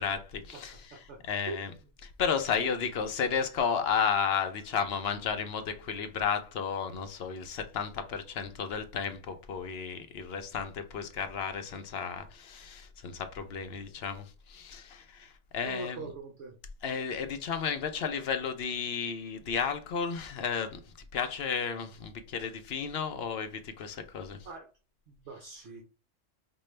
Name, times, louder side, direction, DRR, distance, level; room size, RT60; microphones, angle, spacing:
voice 1, 0.0-1.7 2.0-16.1 16.8-24.4, left 6 dB, 60° left, 0.8 m, -33 dB
voice 2, 0.7-1.2 1.5-1.6 2.5-2.7 15.6-16.5 24.4-24.7 25.1-25.8, right 3 dB, 65° right, 1.1 m, -42 dB
5.3 x 2.3 x 3.2 m
omnidirectional pair, 1.3 m